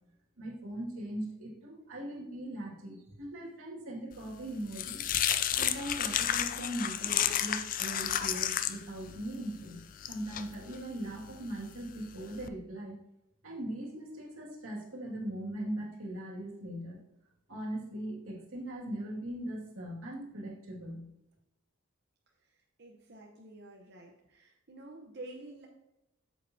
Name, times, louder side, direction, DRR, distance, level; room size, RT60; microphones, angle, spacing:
voice 1, 0.4-5.0 5.6-13.0 13.4-17.0 17.5-21.0, right 1 dB, 85° right, -1 dB, 2.2 m, -40 dB
sound 1, 4.2-12.5, left 10 dB, 40° left, 0.4 m, -33 dB
voice 2, 22.8-25.7, right 2 dB, 50° right, 0 dB, 0.9 m, -49 dB
8.8 x 7.4 x 2.8 m, 0.88 s
head